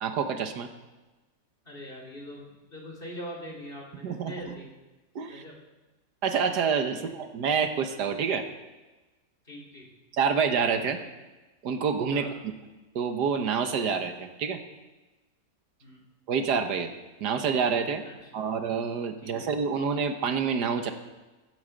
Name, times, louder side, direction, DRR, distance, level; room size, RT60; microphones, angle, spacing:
voice 1, 0.0-0.7 4.0-4.3 5.2-5.4 6.2-8.5 10.1-11.0 11.6-12.3 13.0-14.6 16.3-16.9 17.2-18.0 18.3-20.9, right 6 dB, 70° right, 7 dB, 1.7 m, -27 dB
voice 2, 1.6-4.7 5.3-5.6 6.9-7.1 9.4-9.9 12.1-12.3 15.8-16.0 18.0-18.5 19.2-19.5, equal, 30° left, -2 dB, 3.3 m, -43 dB
15.0 x 9.1 x 7.8 m, 1.2 s
omnidirectional pair, 1.9 m